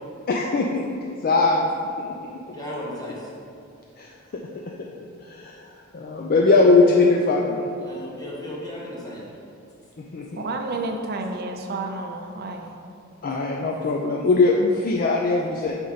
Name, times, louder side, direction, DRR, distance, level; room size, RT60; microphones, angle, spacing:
voice 1, 0.3-0.8 1.2-1.6 4.0-4.1 5.2-5.7 5.9-7.7 10.0-10.4 13.2-15.8, left 3 dB, 45° left, 0 dB, 0.4 m, -20 dB
voice 2, 2.0-3.3 6.5-6.7 7.8-9.2, equal, 20° left, -5 dB, 1.2 m, -36 dB
voice 3, 10.3-12.7, right 2 dB, 50° right, 3 dB, 0.6 m, -30 dB
5.4 x 4.4 x 4.9 m, 2.4 s
head